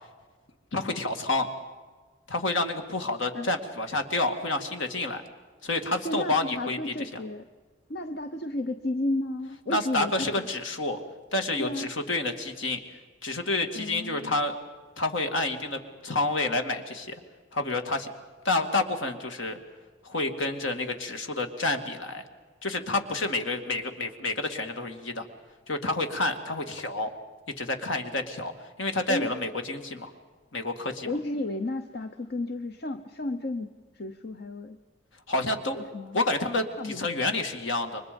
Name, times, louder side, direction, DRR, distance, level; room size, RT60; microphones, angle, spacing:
voice 1, 0.7-1.5 2.3-5.2 5.6-7.2 9.7-11.0 11.3-12.8 13.2-14.6 15.0-17.2 17.5-18.1 18.4-19.6 20.0-22.2 22.6-25.3 25.7-27.1 27.6-30.1 30.5-31.1 35.3-35.8 36.1-38.0, left 2 dB, 70° left, 6 dB, 2.3 m, -29 dB
voice 2, 6.0-7.4 7.9-10.5 11.6-11.9 13.7-14.4 29.1-29.3 31.0-34.8 35.9-36.2 36.8-37.3, left 2 dB, 55° left, 8 dB, 0.9 m, -33 dB
29.5 x 24.5 x 5.3 m, 1.4 s
head